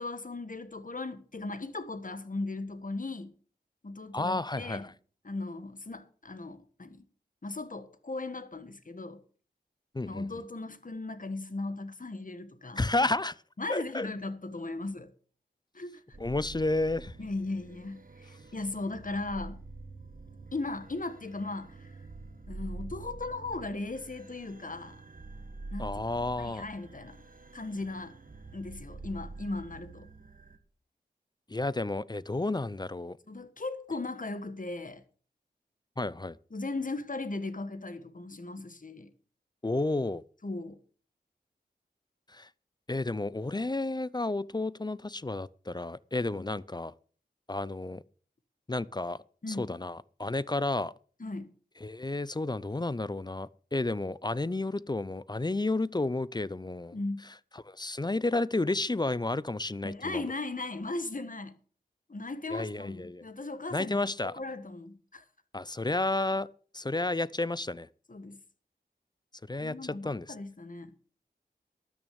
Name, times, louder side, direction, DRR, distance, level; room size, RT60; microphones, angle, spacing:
voice 1, 0.0-3.3 3.8-4.9 5.2-7.0 7.4-9.2 10.0-12.9 13.6-15.1 15.7-16.2 17.2-19.6 20.5-21.9 22.5-25.0 25.7-26.0 26.4-27.2 27.5-28.1 28.5-30.1 33.3-35.0 36.5-39.1 40.4-40.8 46.3-46.5 49.4-49.7 51.2-51.5 56.9-57.3 59.8-61.6 62.1-64.0 64.2-65.2 68.1-68.4 69.6-70.9, left 2 dB, 50° left, 1.6 m, -37 dB
voice 2, 4.1-4.9 9.9-10.3 12.8-13.4 13.7-14.1 16.2-17.1 25.8-26.7 31.5-33.2 36.0-36.4 39.6-40.2 42.3-42.5 42.9-46.9 47.5-48.0 48.7-49.2 49.5-50.9 51.8-57.0 57.6-60.3 62.5-63.2 63.7-64.3 65.5-66.5 66.7-67.9 69.5-70.3, left 2 dB, 25° left, 0.5 m, -31 dB
sound 1, 16.1-30.6, right 3 dB, 50° right, 1.7 m, -46 dB
12.5 x 6.3 x 8.6 m
wide cardioid pair, 50°, 18 cm